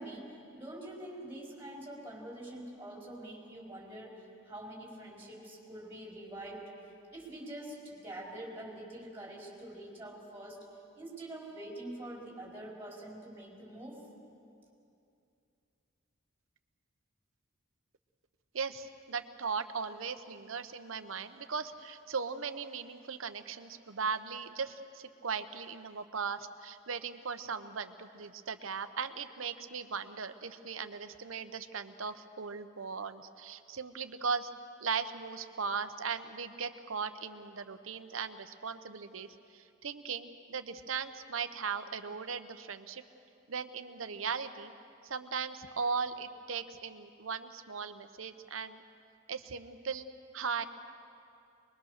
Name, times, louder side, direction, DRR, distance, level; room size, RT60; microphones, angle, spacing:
voice 1, 0.0-6.7 7.1-10.6 11.0-14.0, right 1 dB, 10° right, -3 dB, 4.6 m, -45 dB
voice 2, 18.5-34.5 34.8-43.0 43.5-44.7 45.0-48.8 49.3-50.1 50.3-50.6, right 5 dB, 85° right, 10 dB, 0.9 m, -38 dB
24.0 x 21.5 x 6.6 m, 2.6 s
head